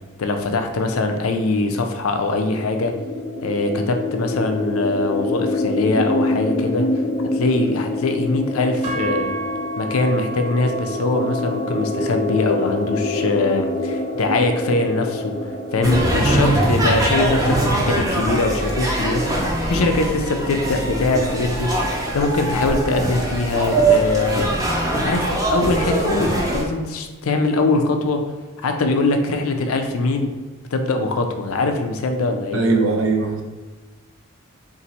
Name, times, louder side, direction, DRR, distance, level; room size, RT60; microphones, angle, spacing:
voice 1, 0.2-2.9 3.4-6.9 7.2-9.3 9.8-15.3 15.7-19.3 19.7-21.7 22.1-24.5 25.0-28.2 28.6-30.4 30.7-32.7, left 2 dB, 80° left, 5 dB, 0.5 m, -22 dB
sound 1, 2.4-18.0, left 2 dB, 30° left, 0.5 m, -26 dB
sound 2, 8.8-17.1, right 2 dB, 35° right, 0.9 m, -35 dB
sound 3, 15.8-26.6, right 1 dB, 15° right, 0.6 m, -21 dB
voice 2, 32.5-33.4, right 3 dB, 65° right, 2 dB, 0.6 m, -19 dB
4.0 x 2.6 x 4.2 m, 1.3 s
head